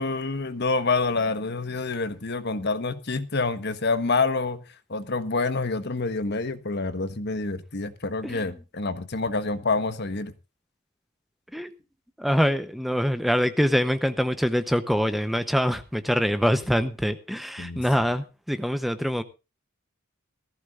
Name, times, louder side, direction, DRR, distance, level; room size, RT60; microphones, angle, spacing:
voice 1, 0.0-4.6 4.9-10.3 17.6-18.0, left 3 dB, 55° left, 1.2 m, -27 dB
voice 2, 12.2-19.2, equal, ahead, 0.8 m, -24 dB
18.5 x 14.5 x 2.5 m
head